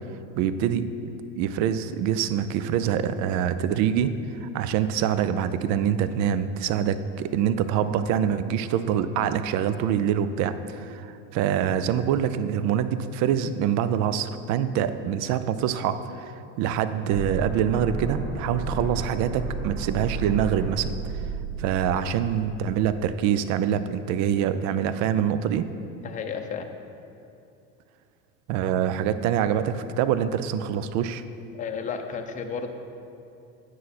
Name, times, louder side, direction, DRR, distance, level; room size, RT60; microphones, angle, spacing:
voice 1, 0.4-4.1 4.4-20.9 21.6-25.7 28.5-31.2, right 9 dB, 55° right, 12 dB, 0.5 m, -25 dB
sound 1, 17.1-23.1, right 3 dB, 20° right, 1.6 m, -33 dB
voice 2, 26.0-26.7 31.5-32.7, left 6 dB, 25° left, 5 dB, 0.6 m, -32 dB
9.2 x 6.4 x 4.2 m, 2.7 s
supercardioid pair, 115°, 34 cm